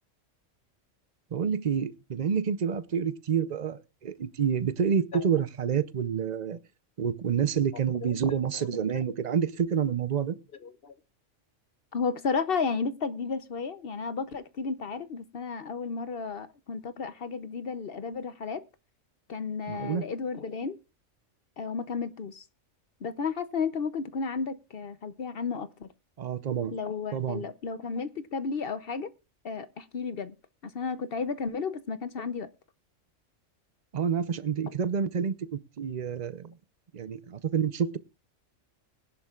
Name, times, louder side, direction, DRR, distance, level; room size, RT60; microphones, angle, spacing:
voice 1, 1.3-6.6 7.0-10.4 19.7-20.0 26.2-26.8 27.1-27.4 33.9-36.5 36.9-38.0, right 7 dB, 40° right, 0.7 m, -28 dB
voice 2, 8.0-8.7 10.6-10.9 11.9-18.6 19.3-20.8 21.6-22.4 23.0-25.9 26.7-29.1 29.4-30.3 30.6-32.5, left 5 dB, 55° left, 0.9 m, -33 dB
20.5 x 11.0 x 2.4 m
omnidirectional pair, 1.3 m